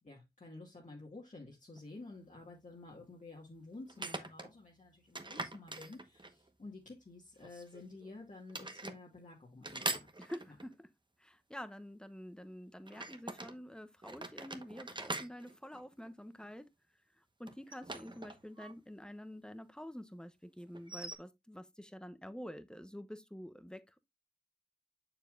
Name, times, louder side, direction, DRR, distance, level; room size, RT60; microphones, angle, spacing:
voice 1, 0.0-10.1, left 2 dB, 50° left, 2.0 m, -51 dB
sound 1, 1.8-1.9 3.9-4.5 5.2-6.5 7.4-8.1 8.5-9.0 9.6-10.7 12.9-13.6 14.0-16.4 17.5-18.7 19.0-19.1 20.7-21.2, right 2 dB, 30° right, 1.1 m, -43 dB
voice 2, 10.2-10.9 11.2-16.7 17.2-24.0, equal, 5° left, 1.0 m, -48 dB
7.0 x 6.9 x 2.5 m
cardioid pair, 45°, 17 cm